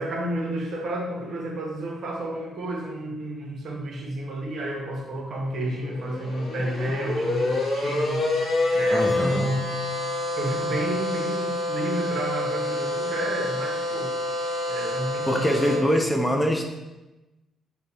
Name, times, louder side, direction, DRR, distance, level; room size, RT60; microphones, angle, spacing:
voice 1, 0.0-8.3 8.7-9.8 10.4-14.1 14.7-15.8, right 1 dB, 60° right, -1 dB, 0.8 m, -31 dB
sound 1, 5.6-15.8, left 2 dB, 45° left, 0.9 m, -27 dB
voice 2, 8.9-9.5 12.7-13.2 15.3-16.6, equal, 10° left, 2 dB, 0.4 m, -24 dB
3.1 x 2.2 x 4.0 m, 1.0 s
cardioid pair, 90°, 0 cm